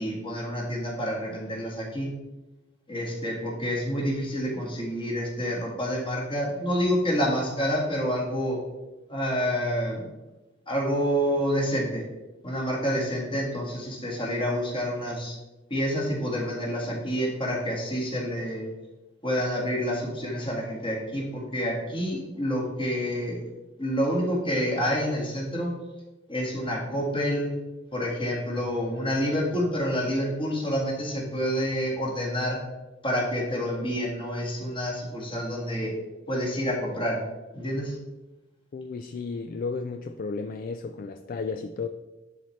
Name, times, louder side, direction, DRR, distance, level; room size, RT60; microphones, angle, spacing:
voice 1, 0.0-2.1 2.9-8.6 9.1-10.0 10.7-12.0 12.4-15.4 15.7-18.7 19.2-23.4 23.8-25.7 26.3-27.5 27.9-32.6 33.0-35.9 36.3-37.2 37.5-38.0, equal, 30° left, -2 dB, 1.7 m, -28 dB
voice 2, 38.7-41.9, left 4 dB, 50° left, 7 dB, 0.3 m, -33 dB
10.5 x 4.2 x 3.1 m, 1.1 s
head